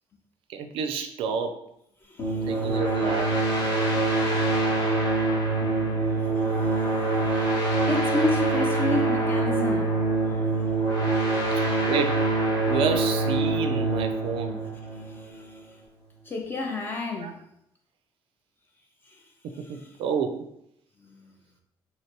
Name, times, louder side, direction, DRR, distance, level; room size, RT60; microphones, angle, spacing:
voice 1, 0.5-1.6 2.5-3.4 11.5-12.2 12.6-14.6 17.2-17.3 19.4-20.5, right 6 dB, 75° right, 0.4 m, -30 dB
voice 2, 2.1-2.8 4.4-4.5 6.4-7.4 7.9-10.0 15.1-15.6 16.3-17.3 21.1-21.4, left 2 dB, 25° left, 0.4 m, -31 dB
sound 1, 2.2-15.5, right 2 dB, 50° left, 0.8 m, -25 dB
3.2 x 2.8 x 2.9 m
cardioid pair, 160°, 9 cm